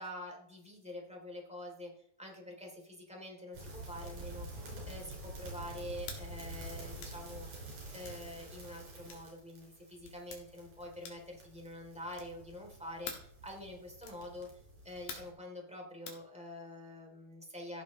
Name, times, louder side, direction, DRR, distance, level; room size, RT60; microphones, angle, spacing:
voice 1, 0.0-14.5 14.8-17.8, left 1 dB, ahead, -1 dB, 2.5 m, -46 dB
sound 1, 3.5-15.3, right 1 dB, 60° right, 5.5 m, -48 dB
sound 2, 6.0-6.2 7.0-7.2 8.0-8.2 9.1-9.3 10.0-10.4 11.0-11.3 12.1-12.4 13.0-13.3 14.0-14.2 15.1-15.4 16.1-16.2, left 6 dB, 85° left, 3.7 m, -46 dB
15.5 x 8.3 x 3.2 m, 0.70 s
omnidirectional pair, 4.1 m